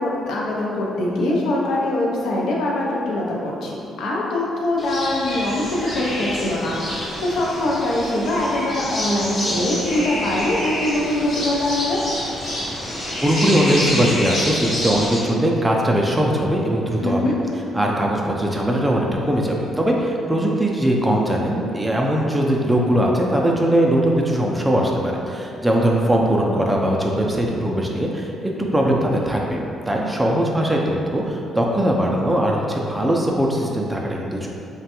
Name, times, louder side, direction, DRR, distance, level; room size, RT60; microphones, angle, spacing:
voice 1, 0.0-12.0 17.0-17.4, left 1 dB, 80° left, -3 dB, 0.5 m, -23 dB
sound 1, 4.8-15.2, left 1 dB, 55° left, 1.0 m, -27 dB
voice 2, 13.2-17.3 17.7-34.5, right 1 dB, 10° right, -1 dB, 0.4 m, -20 dB
3.1 x 2.2 x 2.9 m, 2.6 s
cardioid pair, 90°, 0 cm